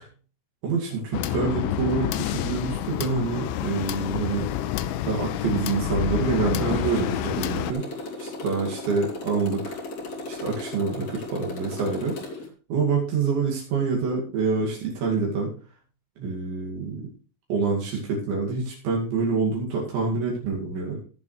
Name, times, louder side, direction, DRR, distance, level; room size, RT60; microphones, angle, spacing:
voice 1, 0.6-4.5 5.0-7.8 8.2-9.8 10.3-12.1 12.7-15.5 16.2-17.0 17.5-21.0, right 4 dB, 70° right, -2 dB, 4.6 m, -26 dB
sound 1, 1.1-7.7, left 11 dB, 80° left, 2.8 m, -28 dB
Motorcycle, 6.6-12.5, left 2 dB, 40° left, 3.1 m, -36 dB
17.0 x 7.1 x 3.3 m, 0.39 s
omnidirectional pair, 5.6 m